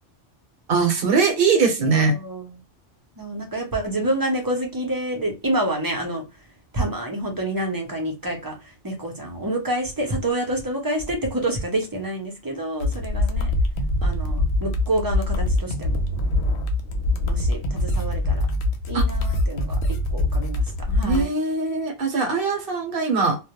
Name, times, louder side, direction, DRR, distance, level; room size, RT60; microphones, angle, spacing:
voice 1, 0.7-2.2 18.9-19.0 21.0-23.4, right 4 dB, 55° right, 0.9 m, -21 dB
voice 2, 1.8-2.6 3.2-6.2 6.7-8.6 8.8-13.5 14.0-16.0 17.3-18.5 18.9-19.8 20.1-20.6 20.9-21.3, right 1 dB, 25° right, 0.5 m, -28 dB
sound 1, 12.8-21.2, left 2 dB, 70° left, 0.8 m, -23 dB
2.2 x 2.1 x 2.9 m
omnidirectional pair, 1.2 m